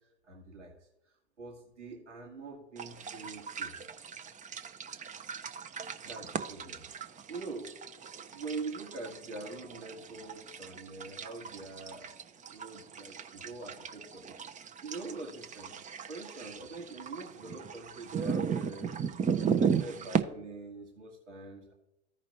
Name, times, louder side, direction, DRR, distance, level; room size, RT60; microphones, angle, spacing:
voice 1, 0.3-0.7 1.4-3.7 6.0-6.8 7.3-7.7 8.3-12.1 12.5-14.4 14.8-15.7 16.1-18.9 19.4-21.7, right 3 dB, 85° right, -1 dB, 1.8 m, -44 dB
sound 1, 2.8-20.2, right 6 dB, 20° right, 0.7 m, -36 dB
15.0 x 5.1 x 2.9 m, 0.86 s
figure-of-eight pair, 80°, 35 cm